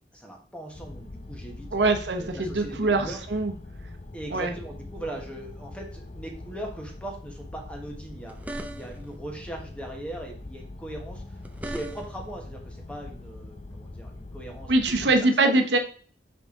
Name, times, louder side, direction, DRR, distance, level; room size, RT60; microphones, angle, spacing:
voice 1, 0.1-1.7 2.2-3.2 4.1-15.6, right 1 dB, 5° left, 1 dB, 1.3 m, -40 dB
sound 1, 0.7-15.2, left 2 dB, 40° left, 0.6 m, -42 dB
voice 2, 1.7-3.5 4.3-4.5 14.7-15.8, right 2 dB, 75° right, 5 dB, 1.0 m, -23 dB
sound 2, 8.2-9.2 11.2-12.3, right 1 dB, 10° right, 0.6 m, -38 dB
5.8 x 5.2 x 3.8 m, 0.42 s
head